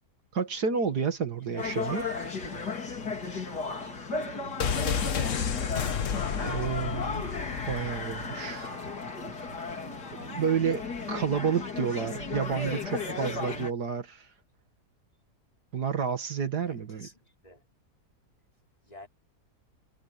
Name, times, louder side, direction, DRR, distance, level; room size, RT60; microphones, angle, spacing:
voice 1, 0.3-2.0 6.4-7.2 7.7-8.8 10.1-14.3 15.7-17.1, right 6 dB, 70° right, 2.5 m, -30 dB
voice 2, 1.4-2.2 16.6-17.6 18.8-19.1, left 1 dB, 20° left, 5.3 m, -52 dB
sound 1, 1.6-13.7, left 4 dB, 75° left, 4.1 m, -35 dB
sound 2, 4.6-8.4 8.6-8.7, left 7 dB, 50° left, 1.4 m, -31 dB
omnidirectional pair, 1.8 m